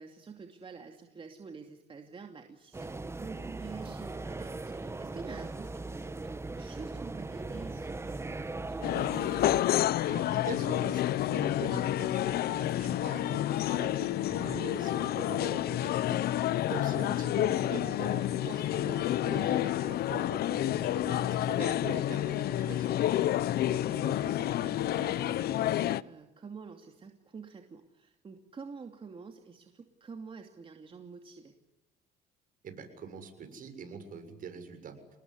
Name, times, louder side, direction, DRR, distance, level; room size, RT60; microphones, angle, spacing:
voice 1, 0.0-8.9 11.6-11.9 16.8-17.0 20.8-21.0 23.6-31.5, right 5 dB, 30° right, 4 dB, 2.7 m, -47 dB
sound 1, 2.7-9.6, right 3 dB, 15° right, 1.4 m, -39 dB
sound 2, 8.8-26.0, left 13 dB, 65° left, 0.9 m, -29 dB
voice 2, 10.0-16.2 16.7-22.9 32.6-35.0, right 5 dB, 55° right, 8 dB, 7.2 m, -43 dB
28.5 x 20.0 x 9.8 m, 1.0 s
cardioid pair, 110°, 17 cm